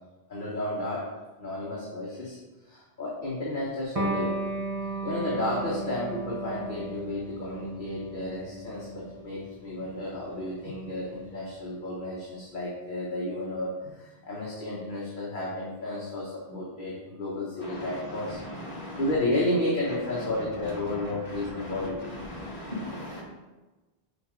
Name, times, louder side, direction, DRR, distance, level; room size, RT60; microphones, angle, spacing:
voice 1, 0.3-1.1 1.4-2.4 2.6-4.5 5.0-18.4 19.0-22.0, left 1 dB, 50° left, -6 dB, 1.4 m, -32 dB
Electric guitar, 4.0-11.1, right 2 dB, 35° right, 1.3 m, -35 dB
voice 2, 17.6-19.0 20.6-20.7 21.3-21.7 22.3-23.2, left 1 dB, 30° left, -6 dB, 2.4 m, -38 dB
6.8 x 4.5 x 5.1 m, 1.2 s
omnidirectional pair, 1.1 m